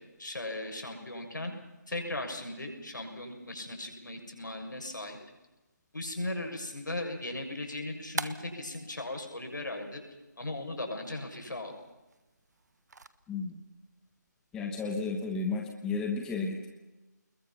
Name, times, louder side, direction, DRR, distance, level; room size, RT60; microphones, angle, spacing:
voice 1, 0.2-1.5 1.9-5.2 5.9-10.0 10.4-11.7, left 2 dB, 80° left, 3 dB, 6.5 m, -37 dB
sound 1, 6.7-13.1, right 3 dB, 65° right, 1.4 m, -46 dB
voice 2, 13.3-13.6 14.5-16.7, left 4 dB, 5° left, 2 dB, 1.2 m, -33 dB
27.0 x 21.5 x 5.8 m, 1.1 s
figure-of-eight pair, 160°, 10 cm